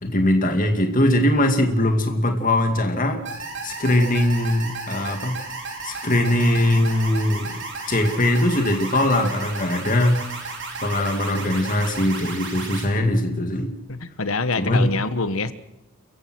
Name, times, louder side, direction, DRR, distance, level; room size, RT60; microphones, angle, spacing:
voice 1, 0.0-3.2 3.6-5.4 5.8-10.2 10.8-13.7 14.6-14.9, left 1 dB, 40° left, 4 dB, 2.3 m, -21 dB
sound 1, 3.3-12.9, right 3 dB, 55° right, 5.1 m, -34 dB
voice 2, 13.9-15.5, left 3 dB, 75° left, 12 dB, 1.3 m, -25 dB
29.0 x 15.5 x 6.3 m, 0.90 s
head